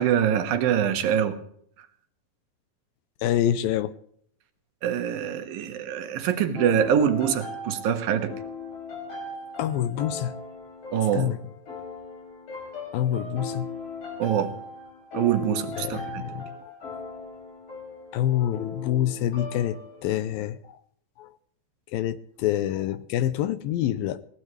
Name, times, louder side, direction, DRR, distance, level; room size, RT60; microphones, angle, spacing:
voice 1, 0.0-1.4 4.8-8.3 10.9-11.3 14.2-14.5 15.1-16.2, right 9 dB, 70° right, 7 dB, 3.0 m, -24 dB
voice 2, 3.2-3.9 9.6-10.3 11.1-11.4 12.9-13.7 15.8-16.4 18.1-19.8 20.0-20.6 21.2-21.3 21.9-24.2, left 11 dB, 80° left, 14 dB, 2.4 m, -26 dB
sound 1, 6.6-20.2, left 3 dB, 60° left, 7.7 m, -38 dB
21.5 x 18.0 x 3.3 m, 0.66 s
omnidirectional pair, 4.4 m